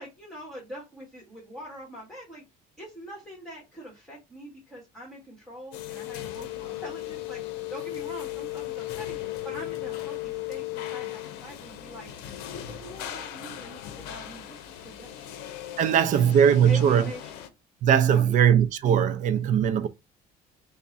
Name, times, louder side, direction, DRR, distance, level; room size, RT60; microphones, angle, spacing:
voice 1, 0.0-2.4 2.8-12.1 12.5-15.4 16.1-17.4 18.1-18.3, equal, ahead, 1.6 m, -43 dB
sound 1, 5.7-17.5, left 14 dB, 85° left, 0.6 m, -37 dB
voice 2, 15.8-17.0 17.8-19.9, right 8 dB, 50° right, 0.5 m, -20 dB
3.4 x 2.2 x 3.9 m
cardioid pair, 130°, 16 cm